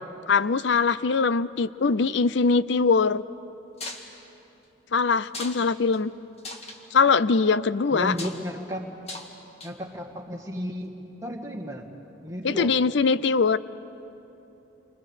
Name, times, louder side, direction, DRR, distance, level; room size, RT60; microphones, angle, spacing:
voice 1, 0.3-3.2 4.9-6.1 6.9-8.1 12.4-13.6, left 4 dB, 60° left, 17 dB, 0.5 m, -22 dB
sound 1, 3.8-4.1 5.2-5.6 5.9-6.0 6.4-6.8 8.1-8.4 9.1-9.3 9.6-9.9, left 2 dB, 30° left, 1.8 m, -38 dB
voice 2, 7.9-8.9 9.6-10.9 11.2-11.9 12.2-12.8, equal, 15° right, 0 dB, 2.0 m, -33 dB
29.5 x 25.0 x 6.5 m, 2.9 s
head